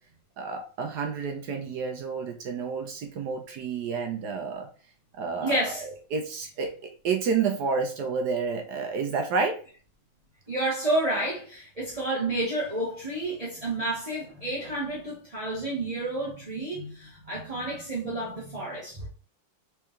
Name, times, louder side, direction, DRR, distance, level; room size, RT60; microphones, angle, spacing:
voice 1, 0.4-4.7 5.1-5.6 6.1-9.6, right 5 dB, 70° right, 1.1 m, -30 dB
voice 2, 5.4-5.9 10.5-19.1, right 1 dB, 25° right, 1.1 m, -30 dB
4.7 x 3.5 x 3.2 m
omnidirectional pair, 2.1 m